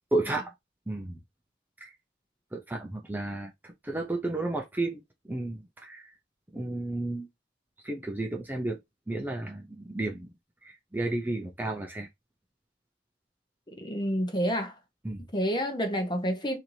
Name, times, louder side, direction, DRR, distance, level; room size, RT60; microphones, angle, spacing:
voice 1, 0.1-0.5 0.9-1.2 1.8-1.9 2.5-5.0 5.3-6.1 6.5-7.3 7.8-8.8 9.1-10.3 10.6-12.1 15.0-15.2, right 2 dB, 10° right, 0.5 m, -32 dB
voice 2, 13.8-14.7 15.3-16.6, equal, 25° left, 0.9 m, -28 dB
4.4 x 2.7 x 2.7 m
head